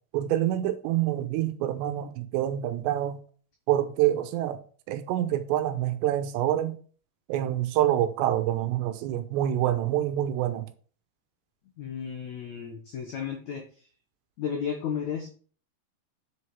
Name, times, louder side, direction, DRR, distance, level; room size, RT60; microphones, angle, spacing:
voice 1, 0.1-3.2 3.7-4.6 4.9-6.8 7.3-10.7, right 12 dB, 85° right, 2.9 m, -26 dB
voice 2, 11.8-13.6 14.4-15.3, left 7 dB, 80° left, 1.6 m, -33 dB
8.2 x 6.5 x 4.7 m
omnidirectional pair, 5.1 m